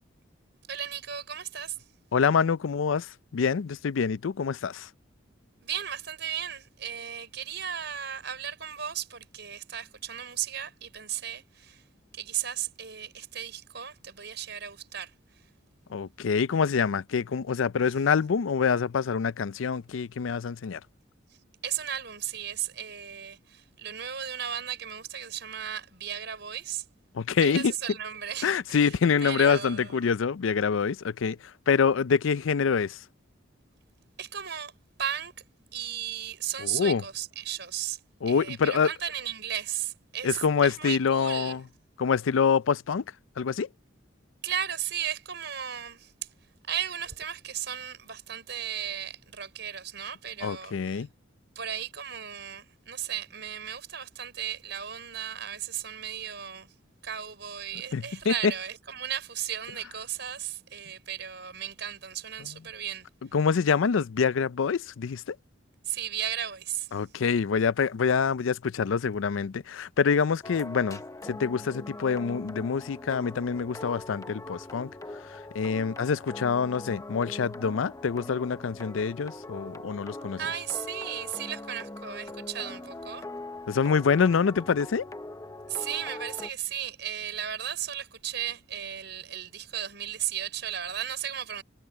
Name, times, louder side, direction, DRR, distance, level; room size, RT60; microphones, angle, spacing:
voice 1, 0.7-1.8 5.6-11.8 12.1-15.1 21.6-26.8 27.4-28.9 29.2-30.1 34.2-34.7 35.0-35.3 35.7-38.0 38.3-41.6 44.4-46.1 46.7-51.0 51.5-56.7 57.0-63.1 65.8-66.9 80.4-83.2 85.7-91.6, right 9 dB, 60° right, 6.2 m, -35 dB
voice 2, 2.1-4.9 15.9-20.8 27.1-27.7 28.4-31.4 31.7-33.0 36.6-37.0 38.2-38.9 40.2-41.6 42.0-43.0 43.4-43.7 50.4-51.1 57.9-58.5 63.3-65.4 66.9-74.9 75.5-80.4 83.7-85.1, left 6 dB, 90° left, 0.5 m, -26 dB
sound 1, 70.4-86.5, left 2 dB, 15° left, 0.9 m, -42 dB
head